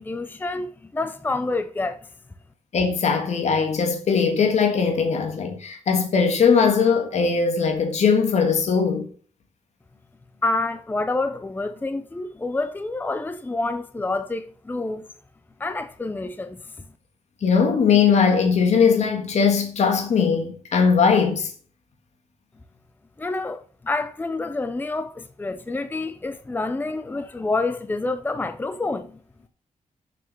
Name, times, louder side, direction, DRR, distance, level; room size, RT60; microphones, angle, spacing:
voice 1, 0.0-2.0 10.4-15.1 15.6-16.6 23.2-29.2, left 2 dB, 15° left, 0.6 m, -28 dB
voice 2, 2.7-9.1 17.4-21.5, left 6 dB, 65° left, 1.6 m, -20 dB
7.0 x 6.3 x 6.4 m
wide cardioid pair, 125°, 13 cm